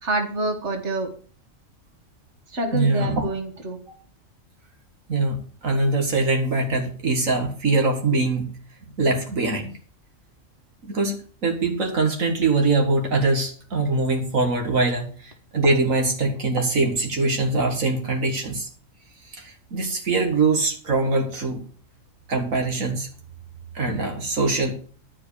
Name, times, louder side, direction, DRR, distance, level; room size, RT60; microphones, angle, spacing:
voice 1, 0.0-1.1 2.5-3.8, right 1 dB, 60° right, 4 dB, 2.3 m, -27 dB
voice 2, 2.7-3.2 5.1-8.5 9.0-9.7 10.8-11.1 11.4-18.7 19.3-21.6 22.3-23.1 23.7-24.7, right 3 dB, 85° right, 3 dB, 2.3 m, -23 dB
12.5 x 5.3 x 8.4 m, 0.42 s
omnidirectional pair, 1.4 m